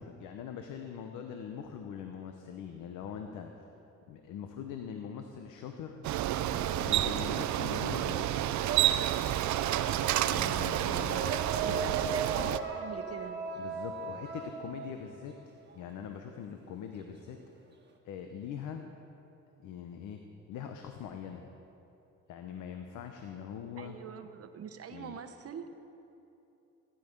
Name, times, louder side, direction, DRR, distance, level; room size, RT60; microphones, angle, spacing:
voice 1, 0.0-3.5 4.1-6.1 6.8-8.5 10.3-11.2 11.7-12.1 13.6-15.3 15.7-17.4 18.0-18.9 19.6-20.2 20.5-21.5 22.3-24.0 24.9-25.2, left 8 dB, 85° left, 5 dB, 0.8 m, -42 dB
Bicycle, 6.0-12.6, right 12 dB, 70° right, 0.5 m, -30 dB
sound 1, 6.5-7.7 8.0-15.8, right 5 dB, 35° right, 1.5 m, -39 dB
voice 2, 10.0-13.4 23.8-25.7, right 7 dB, 50° right, 9 dB, 1.0 m, -43 dB
15.5 x 10.5 x 5.2 m, 2.9 s
cardioid pair, 90°, 30 cm